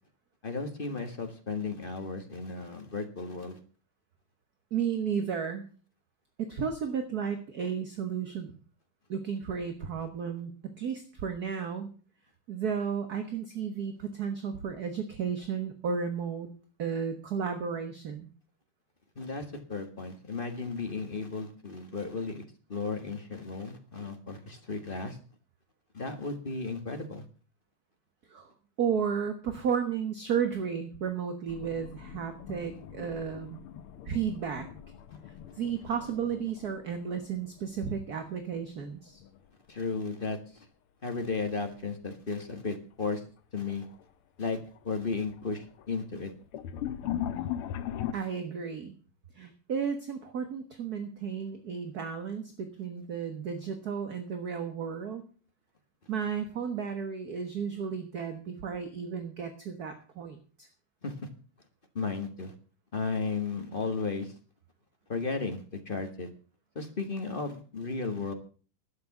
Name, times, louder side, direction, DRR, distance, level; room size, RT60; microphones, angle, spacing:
voice 1, 0.4-3.6 19.1-22.4 22.7-25.2 25.9-27.2 39.7-40.7 41.0-43.2 43.5-43.9 44.4-46.3 61.0-61.3 61.9-62.5 62.9-64.3 65.1-66.3 66.7-68.3, left 4 dB, 25° left, 6 dB, 1.5 m, -34 dB
voice 2, 4.7-5.6 6.4-8.5 9.1-11.9 12.5-16.5 16.8-18.3 28.3-28.5 28.8-33.6 34.0-34.7 35.5-39.2 48.1-49.0 49.3-55.2 56.1-60.7, right 7 dB, 50° right, 7 dB, 1.7 m, -33 dB
sound 1, 31.5-38.3 38.6-39.5 41.2-41.5 42.0-42.1 43.1-43.2 43.6-44.0 44.4-48.1, left 11 dB, 85° left, 1.8 m, -40 dB
12.0 x 8.9 x 7.1 m, 0.39 s
omnidirectional pair, 2.4 m